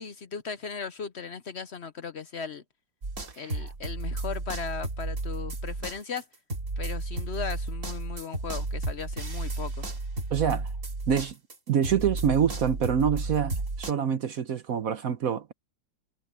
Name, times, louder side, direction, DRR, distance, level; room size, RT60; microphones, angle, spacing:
voice 1, 0.0-2.6 3.4-6.3 6.8-9.9, left 6 dB, 65° left, 0.6 m, -37 dB
sound 1, 3.0-11.6 11.8-13.9, right 2 dB, 40° right, 3.2 m, -33 dB
voice 2, 3.4-3.7 10.3-10.7 11.1-11.3 11.7-15.5, right 8 dB, 55° right, 1.1 m, -26 dB
omnidirectional pair, 2.1 m